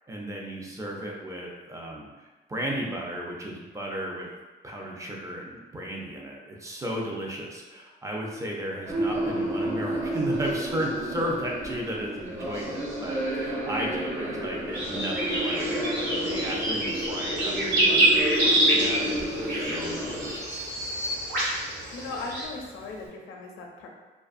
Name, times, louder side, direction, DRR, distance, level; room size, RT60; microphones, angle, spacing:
voice 1, 0.1-4.3 4.6-20.7, right 1 dB, 15° right, -2 dB, 0.5 m, -35 dB
sound 1, 8.8-20.4, equal, 35° right, 1.1 m, -31 dB
sound 2, 14.7-22.4, right 1 dB, 60° right, 1.3 m, -27 dB
Bird vocalization bird call bird song, 18.9-23.1, equal, 90° right, 1.2 m, -36 dB
voice 2, 21.9-23.9, left 3 dB, 90° left, 1 dB, 0.5 m, -38 dB
2.5 x 2.2 x 2.5 m, 1.2 s
cardioid pair, 90°, 20 cm